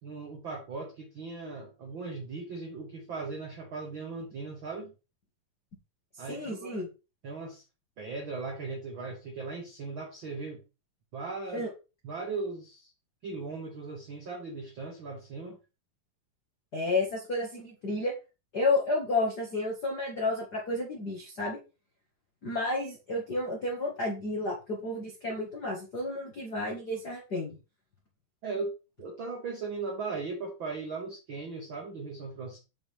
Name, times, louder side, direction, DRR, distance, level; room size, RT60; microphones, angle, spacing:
voice 1, 0.0-4.9 6.2-6.7 7.2-7.6 8.0-10.6 11.1-11.7 12.0-12.9 13.2-15.6 28.4-28.7 29.0-32.6, right 4 dB, 50° right, 1 dB, 1.6 m, -38 dB
voice 2, 6.3-6.9 11.5-11.7 16.7-18.1 18.5-21.6 22.4-27.6, left 2 dB, 35° left, -1 dB, 1.8 m, -31 dB
8.1 x 6.9 x 3.6 m, 0.29 s
omnidirectional pair, 4.3 m